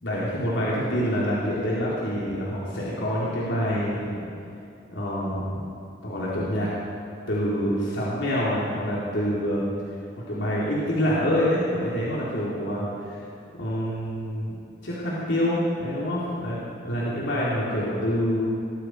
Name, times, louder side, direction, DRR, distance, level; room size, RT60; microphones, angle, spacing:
voice 1, 0.0-4.3 4.9-5.6 6.0-6.7 7.3-9.7 10.3-13.2 13.6-16.6 16.8-18.5, equal, 75° left, -7 dB, 3.4 m, -26 dB
19.5 x 13.5 x 4.7 m, 2.6 s
head